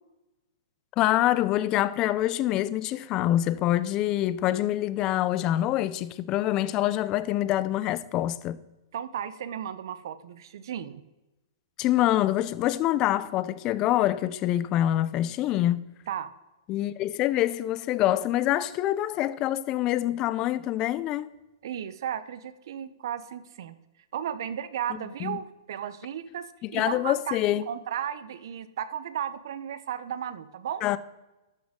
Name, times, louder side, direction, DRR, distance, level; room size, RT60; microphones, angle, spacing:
voice 1, 1.0-8.6 11.8-15.9 16.7-21.3 25.2-25.4 26.6-27.7 30.8-31.0, left 13 dB, 25° left, 0.4 m, -25 dB
voice 2, 8.9-11.0 16.1-16.3 21.6-23.8 24.1-27.4 27.7-30.9, right 9 dB, 60° right, 0.7 m, -34 dB
12.0 x 6.4 x 3.6 m
hypercardioid pair, 155°, 2 cm